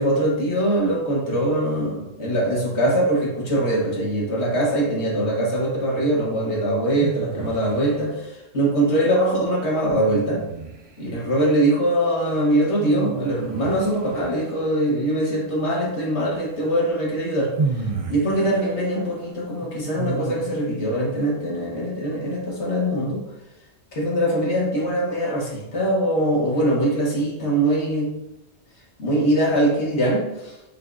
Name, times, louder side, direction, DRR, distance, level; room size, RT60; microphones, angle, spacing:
voice 1, 0.0-10.4 11.0-23.2 23.9-28.1 29.0-30.6, right 1 dB, 85° left, -3 dB, 1.5 m, -22 dB
sound 1, 7.0-8.1 9.9-11.1 12.8-14.8 16.6-16.7 17.6-20.8, right 4 dB, 45° right, 0.5 m, -32 dB
5.5 x 3.4 x 2.6 m, 0.94 s
omnidirectional pair, 1.1 m